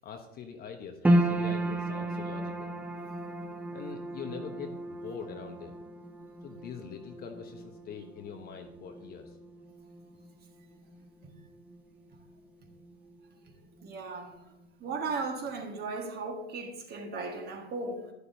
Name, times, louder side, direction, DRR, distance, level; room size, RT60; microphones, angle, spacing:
voice 1, 0.0-2.7 3.7-5.8 6.4-9.2, left 7 dB, 25° left, 1.0 m, -43 dB
sound 1, 1.0-13.5 13.7-14.7 15.1-15.2, right 1 dB, 5° right, 0.6 m, -34 dB
voice 2, 13.8-14.4 14.8-18.1, right 3 dB, 25° right, 1.6 m, -36 dB
11.5 x 9.7 x 2.7 m
hypercardioid pair, 115°, 35 cm